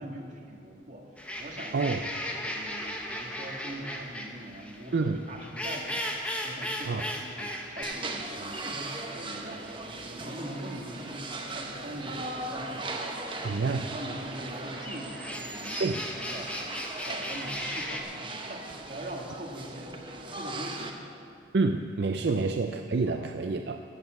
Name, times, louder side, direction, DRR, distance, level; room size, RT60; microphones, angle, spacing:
voice 1, 0.0-13.6 13.9-21.0 22.3-22.4 23.1-23.2, right 1 dB, 45° right, -1 dB, 1.9 m, -42 dB
sound 1, 1.2-18.0, left 1 dB, 5° left, 1.0 m, -38 dB
sound 2, 7.8-20.9, right 2 dB, 25° right, 1.0 m, -39 dB
voice 2, 13.4-13.9 15.8-16.0 21.5-23.8, right 3 dB, 65° right, 6 dB, 0.5 m, -28 dB
14.0 x 7.2 x 7.9 m, 2.4 s
head